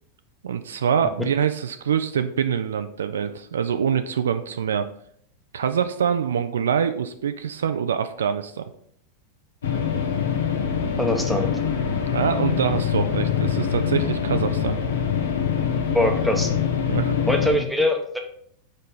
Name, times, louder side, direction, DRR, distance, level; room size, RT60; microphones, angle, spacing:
voice 1, 0.4-4.9 5.5-8.6 12.1-14.8 16.9-17.2, right 7 dB, 65° right, 10 dB, 0.4 m, -25 dB
sound 1, 9.6-17.5, left 7 dB, 65° left, 0.9 m, -24 dB
voice 2, 11.0-11.5 15.9-16.5 17.3-18.2, left 1 dB, ahead, 2 dB, 1.0 m, -22 dB
5.1 x 4.2 x 5.4 m, 0.65 s
figure-of-eight pair, 90°, 0 cm